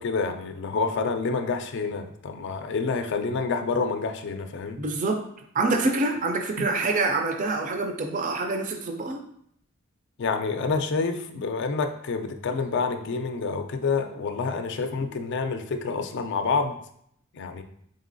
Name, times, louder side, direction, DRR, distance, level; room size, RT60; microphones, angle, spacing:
voice 1, 0.0-4.8 10.2-16.8 17.3-17.6, left 4 dB, 55° left, 7 dB, 0.4 m, -28 dB
voice 2, 4.8-5.3 5.5-9.2, right 3 dB, 40° right, 4 dB, 0.4 m, -26 dB
4.0 x 3.7 x 2.5 m, 0.68 s
head